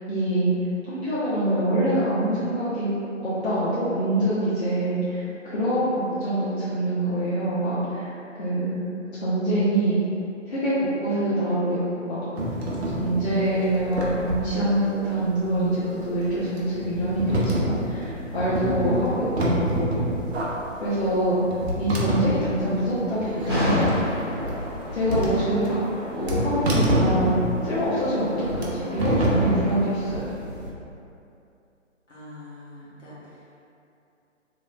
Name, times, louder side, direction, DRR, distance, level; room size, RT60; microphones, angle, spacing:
voice 1, 0.1-0.6 0.9-2.9 3.2-8.1 8.4-8.8 9.2-10.0 10.5-12.2 12.9-19.9 20.8-21.4 21.8-23.9 24.9-25.7 26.1-27.4 27.6-30.3, right 1 dB, 55° left, -11 dB, 0.8 m, -25 dB
sound 1, 12.4-30.7, equal, 55° right, 0.7 m, -27 dB
sound 2, 23.4-29.8, equal, 20° right, 0.4 m, -31 dB
voice 2, 32.1-33.6, left 1 dB, 70° left, -8 dB, 1.2 m, -44 dB
3.1 x 3.0 x 2.3 m, 2.7 s
figure-of-eight pair, 145°, 38 cm